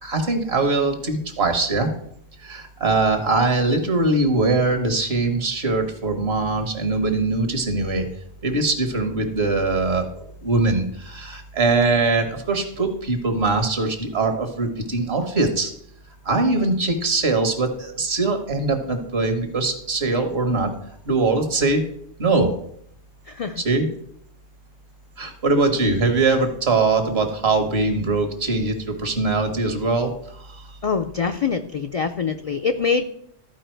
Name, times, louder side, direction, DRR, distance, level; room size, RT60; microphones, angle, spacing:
voice 1, 0.0-1.9 2.4-8.1 8.4-10.0 10.4-15.7 16.2-20.7 21.1-21.8 22.2-22.5 23.6-23.9 25.2-30.6, right 3 dB, 65° right, 6 dB, 1.6 m, -22 dB
voice 2, 23.3-23.6 30.8-33.0, left 5 dB, 65° left, 7 dB, 0.3 m, -24 dB
13.0 x 4.8 x 4.5 m, 0.70 s
omnidirectional pair, 1.1 m